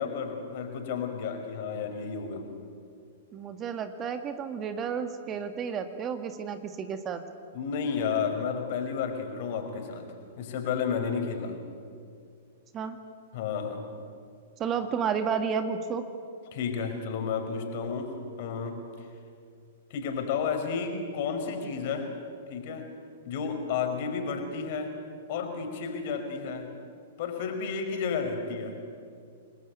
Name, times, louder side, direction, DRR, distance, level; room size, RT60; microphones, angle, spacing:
voice 1, 0.0-2.5 7.5-10.1 10.4-11.6 13.3-13.8 16.5-18.8 19.9-22.1 22.5-22.9 23.3-24.9 25.3-26.7 27.2-28.8, left 6 dB, 55° left, 5 dB, 5.4 m, -32 dB
voice 2, 3.3-7.2 12.7-13.0 14.6-16.0, right 6 dB, 25° right, 8 dB, 1.9 m, -31 dB
28.5 x 21.0 x 9.5 m, 2.3 s
figure-of-eight pair, 110°, 0 cm